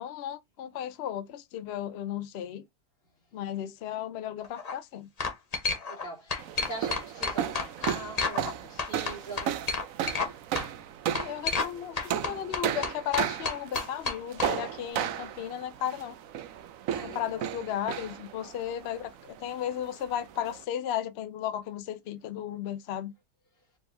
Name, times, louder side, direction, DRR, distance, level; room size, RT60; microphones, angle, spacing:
voice 1, 0.0-2.6 3.3-5.1 11.2-16.2 17.0-23.1, left 10 dB, 80° left, 0.5 m, -35 dB
sound 1, 4.4-4.7 5.2-6.0 6.3-8.5 8.8-10.3 10.5-10.7 11.1-11.7 12.0-14.5, left 4 dB, 30° left, 0.7 m, -30 dB
voice 2, 5.9-9.6 16.9-17.4, right 1 dB, 50° left, 2.3 m, -42 dB
sound 2, 6.4-20.6, right 10 dB, 65° right, 0.9 m, -35 dB
4.8 x 3.7 x 2.6 m
omnidirectional pair, 1.8 m